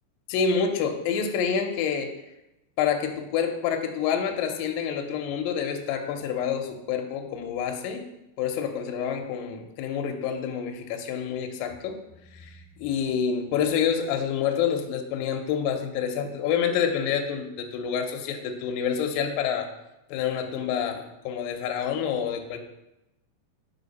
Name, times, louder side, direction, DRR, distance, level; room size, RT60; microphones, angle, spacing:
voice 1, 0.3-2.1 2.8-8.0 8.4-12.0 12.3-19.7 20.1-22.6, left 7 dB, 80° left, 4 dB, 2.0 m, -28 dB
5.7 x 5.2 x 4.0 m, 0.92 s
omnidirectional pair, 4.7 m